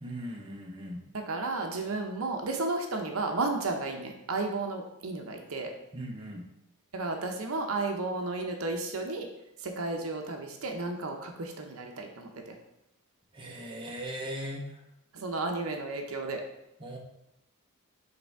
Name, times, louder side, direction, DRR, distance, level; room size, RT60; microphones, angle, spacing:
voice 1, 0.0-1.0 5.9-6.5 13.3-14.8 16.8-17.0, equal, 20° right, -1 dB, 0.9 m, -39 dB
voice 2, 1.1-5.7 6.9-9.3 9.6-12.6 15.1-16.4, right 3 dB, 70° right, 3 dB, 0.8 m, -33 dB
6.7 x 3.4 x 4.6 m, 0.86 s
head